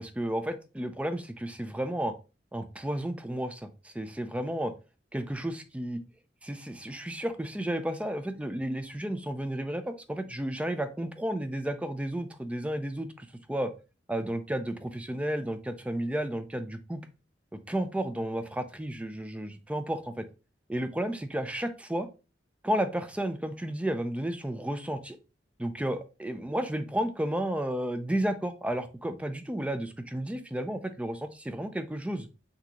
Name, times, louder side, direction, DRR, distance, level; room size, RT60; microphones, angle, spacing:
voice 1, 0.0-2.2 2.5-4.7 5.1-6.0 6.4-13.7 14.1-17.0 17.5-20.3 20.7-22.1 22.6-25.2 25.6-32.3, right 1 dB, 5° right, 9 dB, 0.4 m, -32 dB
6.1 x 2.8 x 2.9 m, 0.31 s
head